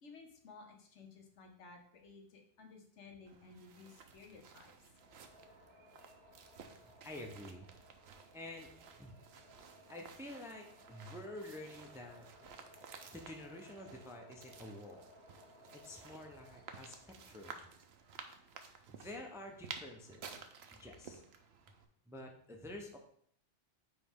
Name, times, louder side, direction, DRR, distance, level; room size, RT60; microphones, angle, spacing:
voice 1, 0.0-4.7, left 4 dB, 80° left, 3 dB, 1.3 m, -56 dB
sound 1, 3.3-21.8, right 6 dB, 65° right, 0.9 m, -54 dB
sound 2, 4.9-17.4, left 2 dB, 40° left, 1.8 m, -62 dB
voice 2, 7.0-7.7 8.3-8.7 9.0-9.2 9.9-12.2 13.1-15.0 15.7-18.2 18.9-20.4 20.7-21.2 22.1-23.0, left 1 dB, 5° right, 2 dB, 0.6 m, -49 dB
9.1 x 3.1 x 3.6 m, 0.64 s
omnidirectional pair, 1.2 m